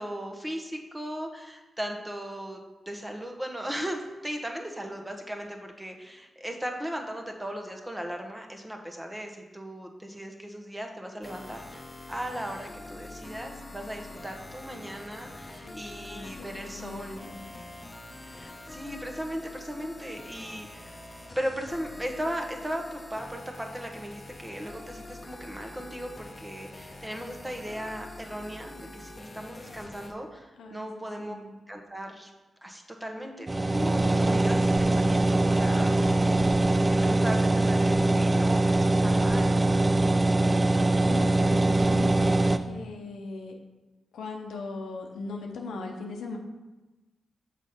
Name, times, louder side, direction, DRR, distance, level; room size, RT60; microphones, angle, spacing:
voice 1, 0.0-2.6 2.9-17.2 18.3-21.0 21.4-31.4 31.7-32.3 32.6-39.6, equal, 15° right, 2 dB, 1.1 m, -37 dB
sound 1, 11.2-30.1, left 2 dB, 35° left, 0.8 m, -45 dB
voice 2, 15.6-17.4 30.6-31.5 41.0-43.5 44.1-46.4, left 3 dB, 85° left, 2 dB, 0.7 m, -40 dB
sound 2, 33.5-42.6, right 2 dB, 30° right, 0.4 m, -23 dB
6.2 x 4.2 x 5.2 m, 1.1 s
supercardioid pair, 45°, 0 cm